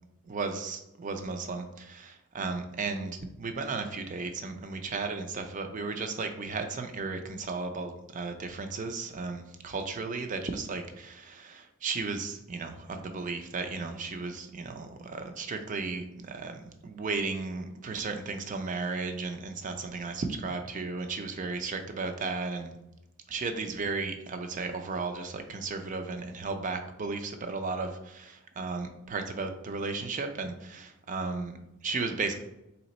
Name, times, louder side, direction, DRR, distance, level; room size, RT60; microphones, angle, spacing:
voice 1, 0.3-22.8 23.3-32.4, right 4 dB, 40° right, 6 dB, 0.4 m, -35 dB
3.3 x 2.9 x 4.1 m, 0.90 s
head